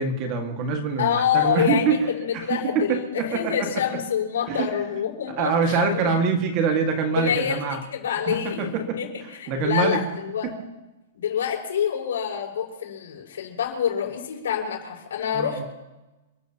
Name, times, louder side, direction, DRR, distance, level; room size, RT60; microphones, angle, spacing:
voice 1, 0.0-2.0 2.3-3.7 4.5-4.7 5.4-7.8 8.3-9.0 9.5-10.0 15.3-15.6, right 5 dB, 25° right, 4 dB, 1.9 m, -24 dB
voice 2, 1.0-6.1 7.1-7.6 7.9-10.5 11.1-15.6, left 8 dB, 80° left, 1 dB, 6.0 m, -27 dB
29.0 x 14.5 x 2.9 m, 1.0 s
hypercardioid pair, 175°, 0 cm